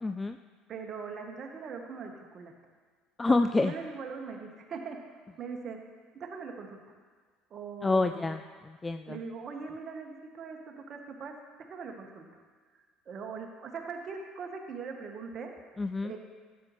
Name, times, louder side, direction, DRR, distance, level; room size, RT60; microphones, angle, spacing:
voice 1, 0.0-0.4 3.2-3.7 7.8-9.2 15.8-16.1, left 3 dB, 20° left, 9 dB, 0.3 m, -28 dB
voice 2, 0.7-2.5 3.3-5.0 5.4-5.8 6.1-6.8 7.5-8.4 9.1-12.3 13.1-15.5 16.0-16.2, right 5 dB, 45° right, 3 dB, 1.2 m, -41 dB
12.5 x 8.4 x 3.1 m, 1.5 s
hypercardioid pair, 60°, 0 cm